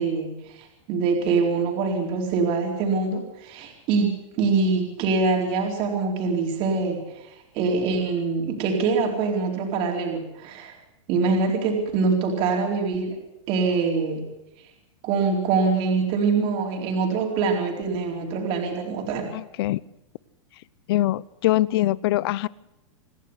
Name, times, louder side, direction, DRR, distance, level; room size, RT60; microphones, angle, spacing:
voice 1, 0.0-7.3 7.5-10.7 11.1-13.1 13.5-14.2 15.0-19.3, right 4 dB, 35° right, 1 dB, 4.4 m, -24 dB
voice 2, 19.3-19.8 20.9-22.5, left 15 dB, 50° left, 22 dB, 0.7 m, -23 dB
26.5 x 11.5 x 9.9 m, 0.93 s
supercardioid pair, 155°, 16 cm